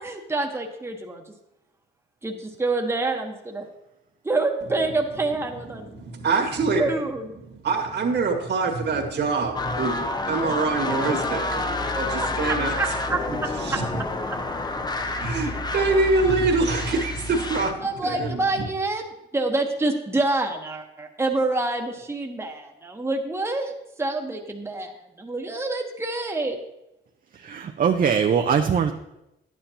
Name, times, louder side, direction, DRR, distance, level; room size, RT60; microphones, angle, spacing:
voice 1, 0.0-1.3 2.2-3.7 4.2-6.0 6.8-7.4 12.2-13.8 17.8-26.6, right 2 dB, 10° right, 2 dB, 1.1 m, -27 dB
voice 2, 6.0-6.9 7.6-11.7 11.9-12.7 15.2-18.4, right 3 dB, 60° right, 4 dB, 1.8 m, -24 dB
sound 1, 9.5-17.7, left 2 dB, 20° left, 0.7 m, -29 dB
voice 3, 27.4-28.9, right 7 dB, 45° right, 5 dB, 0.6 m, -21 dB
11.0 x 9.1 x 2.9 m, 0.89 s
cardioid pair, 90°, 20 cm